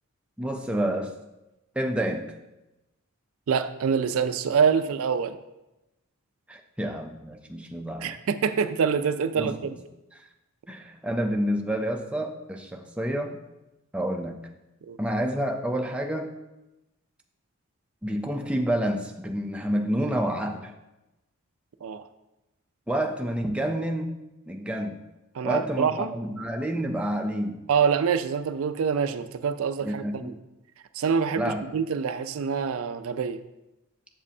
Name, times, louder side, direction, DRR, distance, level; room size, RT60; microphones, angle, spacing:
voice 1, 0.4-1.1 1.8-2.3 6.5-8.2 9.4-9.7 10.7-13.4 13.9-14.4 15.0-16.4 18.0-20.7 22.9-24.2 24.5-25.0 25.4-27.6 29.8-30.3 31.4-31.7, right 1 dB, 5° right, 3 dB, 0.4 m, -29 dB
voice 2, 3.5-5.4 8.0-9.8 14.8-15.0 21.8-22.0 25.4-26.1 27.7-30.3 30.9-33.4, right 6 dB, 70° right, 11 dB, 0.4 m, -26 dB
7.4 x 7.1 x 2.7 m, 0.97 s
head